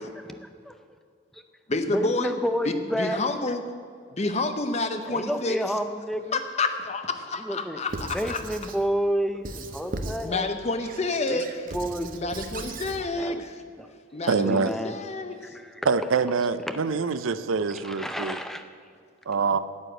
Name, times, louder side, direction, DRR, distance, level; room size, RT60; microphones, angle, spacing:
voice 1, 0.2-0.7 1.3-1.4 1.9-3.2 5.1-6.4 7.4-7.8 8.1-10.5 11.3-11.4 11.7-12.5 13.2-13.4 13.8-13.9 14.4-15.0 15.4-15.9 16.7-16.9 17.8-18.7, equal, ahead, 7 dB, 0.5 m, -30 dB
voice 2, 1.7-2.3 2.7-3.6 4.1-5.6 6.3-8.4 10.2-11.7 12.1-13.6 14.1-15.5, left 3 dB, 35° left, 8 dB, 0.7 m, -29 dB
Squeak / Writing, 7.9-8.8 9.4-10.3 10.8-13.0, right 2 dB, 45° right, 0.7 m, -37 dB
voice 3, 14.3-14.7 15.9-18.4 19.3-19.6, right 5 dB, 80° right, 14 dB, 0.5 m, -25 dB
9.6 x 8.2 x 7.7 m, 2.2 s
head